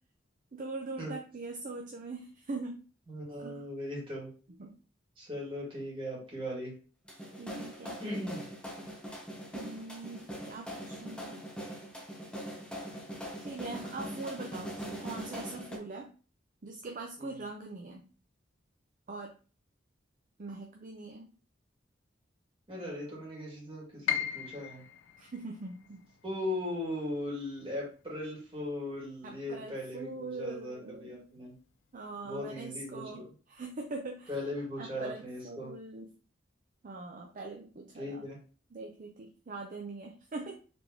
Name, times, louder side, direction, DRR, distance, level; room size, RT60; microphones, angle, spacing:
voice 1, 0.5-2.8 3.4-3.6 4.6-4.8 7.4-8.0 9.5-11.5 13.4-16.1 16.6-18.1 19.1-19.4 20.4-21.3 25.2-26.0 29.2-31.2 31.9-34.3 34.8-36.1 36.8-38.3 38.7-40.5, right 3 dB, 45° right, 1 dB, 0.5 m, -42 dB
voice 2, 3.1-4.3 5.2-6.7 8.0-8.5 17.2-17.4 22.7-24.8 26.2-31.5 32.2-33.2 34.3-35.7 37.9-38.4, left 1 dB, 30° right, -4 dB, 2.0 m, -38 dB
sound 1, 7.1-15.8, equal, 5° left, 0.8 m, -42 dB
Piano, 24.1-30.0 30.3-31.5 31.9-32.0 32.7-33.0, left 9 dB, 90° left, 0.4 m, -40 dB
4.2 x 3.4 x 2.8 m, 0.38 s
head